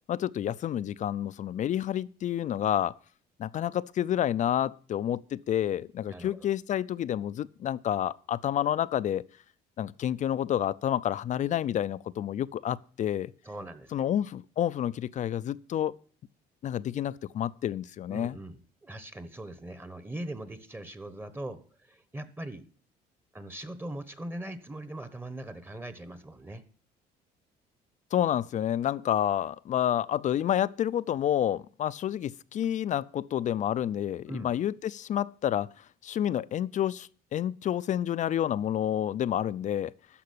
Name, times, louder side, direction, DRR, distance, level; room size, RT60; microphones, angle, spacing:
voice 1, 0.1-2.9 3.4-9.2 9.8-13.3 13.9-16.0 16.6-18.4 28.1-35.7 36.0-39.9, left 10 dB, 45° left, 0.5 m, -29 dB
voice 2, 13.4-14.0 18.1-22.7 23.3-26.6 34.3-34.5, right 1 dB, 10° right, 1.1 m, -41 dB
13.0 x 5.1 x 8.5 m
cardioid pair, 110°, 17 cm